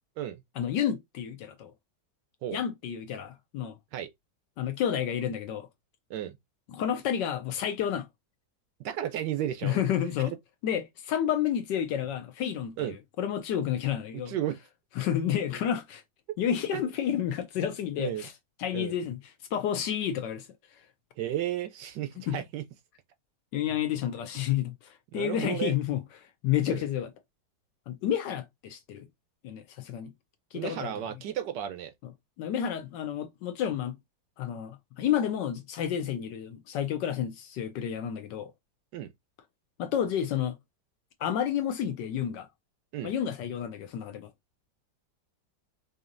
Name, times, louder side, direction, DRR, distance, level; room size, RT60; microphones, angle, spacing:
voice 1, 0.6-1.7 2.5-3.8 4.6-5.7 6.7-8.1 9.6-10.3 10.6-14.3 15.0-16.0 16.4-18.3 18.6-19.2 19.5-20.5 22.3-22.4 23.5-26.0 26.4-27.1 27.9-29.1 29.4-30.1 30.5-30.9 32.4-33.9 34.4-38.5 39.8-40.6 41.2-42.5 43.0-44.3, left 9 dB, 70° left, 1.2 m, -30 dB
voice 2, 8.8-9.8 12.8-13.0 14.1-14.6 16.7-16.8 18.0-18.3 18.7-18.9 21.2-22.6 25.1-25.8 26.7-26.8 30.5-31.9 38.9-39.1 42.9-43.1, right 11 dB, 75° right, 1.1 m, -33 dB
5.0 x 2.7 x 2.5 m
omnidirectional pair, 2.1 m